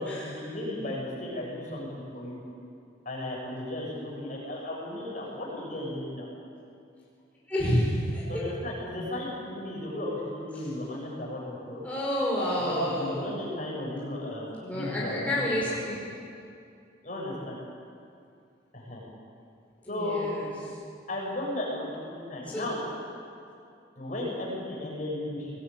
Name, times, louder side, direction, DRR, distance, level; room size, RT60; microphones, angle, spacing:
voice 1, 0.0-2.4 3.1-6.3 8.3-11.8 12.6-16.0 17.0-17.6 18.7-19.0 19.9-20.3 21.1-22.8 24.0-25.6, left 1 dB, 40° left, -3 dB, 7.2 m, -35 dB
voice 2, 7.5-8.5 11.8-13.4 14.6-16.0 19.8-20.5 22.5-22.7, equal, 5° left, -7 dB, 5.1 m, -29 dB
21.0 x 19.0 x 9.4 m, 2.5 s
head